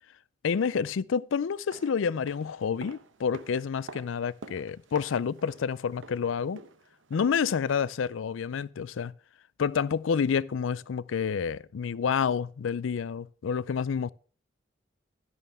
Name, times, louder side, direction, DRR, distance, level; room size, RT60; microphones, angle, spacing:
voice 1, 0.4-6.6 7.1-9.1 9.6-14.1, left 6 dB, 80° left, 0.4 m, -29 dB
sound 1, 1.5-7.5 7.8-7.9, right 3 dB, 75° right, 0.9 m, -49 dB
11.0 x 11.0 x 3.5 m
head